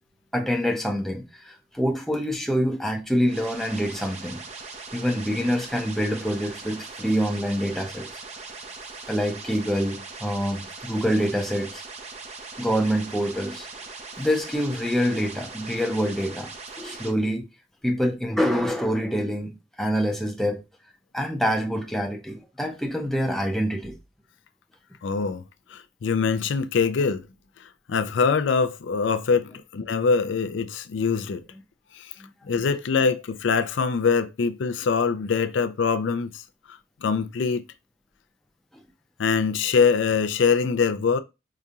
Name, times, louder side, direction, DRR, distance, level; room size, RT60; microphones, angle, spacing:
voice 1, 0.3-4.4 4.9-8.1 9.1-11.8 12.6-13.7 14.2-17.5 17.8-19.5 19.8-20.6 21.1-23.9 32.2-32.3 38.7-38.8, equal, ahead, 0.6 m, -26 dB
sound 1, 3.3-17.1, right 4 dB, 35° right, 0.6 m, -40 dB
voice 2, 25.0-25.4 25.7-27.2 27.9-31.4 31.9-32.1 32.5-36.3 37.0-37.6 39.2-41.2, left 5 dB, 85° left, 0.4 m, -23 dB
4.9 x 2.4 x 2.7 m
head